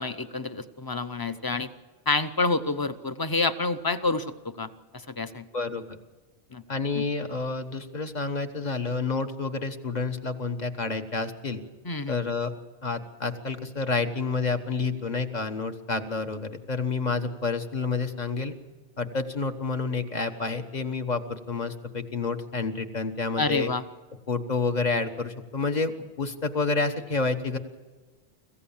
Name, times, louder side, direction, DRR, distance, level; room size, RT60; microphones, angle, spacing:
voice 1, 0.0-1.7 2.1-5.4 6.5-6.6 6.9-7.0 11.8-12.2 23.4-23.8, left 3 dB, 25° left, 11 dB, 0.7 m, -28 dB
voice 2, 5.5-6.0 6.7-11.6 12.1-12.5 12.8-18.5 19.0-23.7 24.3-27.6, left 4 dB, 40° left, 7 dB, 1.3 m, -29 dB
25.5 x 15.5 x 7.2 m, 1.3 s
omnidirectional pair, 1.1 m